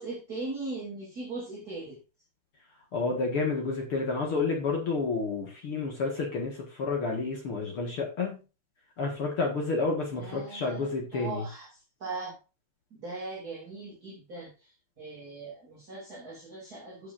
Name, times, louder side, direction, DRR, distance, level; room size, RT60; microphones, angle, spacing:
voice 1, 0.0-2.0 10.1-12.4 12.9-14.7 15.0-17.1, right 3 dB, 30° right, -4 dB, 1.9 m, -39 dB
voice 2, 2.9-8.4 9.0-11.4, left 3 dB, 65° left, 0 dB, 1.3 m, -30 dB
14.0 x 6.8 x 2.6 m, 0.31 s
omnidirectional pair, 5.4 m